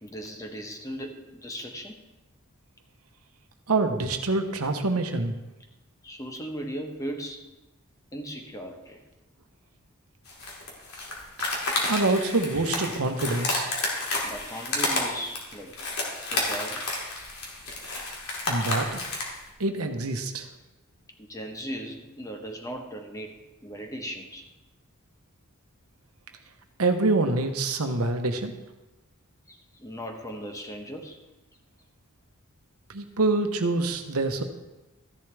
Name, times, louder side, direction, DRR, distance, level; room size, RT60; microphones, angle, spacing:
voice 1, 0.0-2.0 6.0-7.5 8.1-9.0 14.2-15.7 16.3-16.8 21.2-24.5 29.5-31.2, equal, 15° left, 3 dB, 1.1 m, -37 dB
voice 2, 3.7-5.3 11.9-13.7 18.5-19.0 19.6-20.4 26.8-28.5 32.9-34.4, right 2 dB, 75° right, 6 dB, 1.1 m, -26 dB
sound 1, 10.3-19.4, left 2 dB, 85° left, 2.5 m, -30 dB
13.5 x 10.5 x 3.4 m, 1.0 s
head